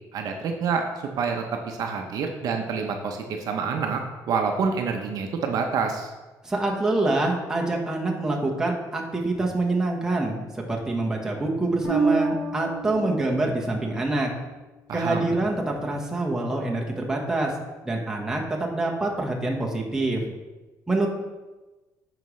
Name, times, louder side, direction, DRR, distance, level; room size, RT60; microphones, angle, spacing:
voice 1, 0.1-0.9 1.2-6.1 14.9-15.3, right 5 dB, 65° right, 4 dB, 0.7 m, -27 dB
voice 2, 6.4-14.3 14.9-17.5 17.8-20.2 20.9-21.1, right 2 dB, 10° right, -1 dB, 1.3 m, -26 dB
Bass guitar, 11.8-14.9, right 4 dB, 25° left, 2.5 m, -29 dB
9.1 x 5.0 x 3.2 m, 1.2 s
cardioid pair, 110°, 7 cm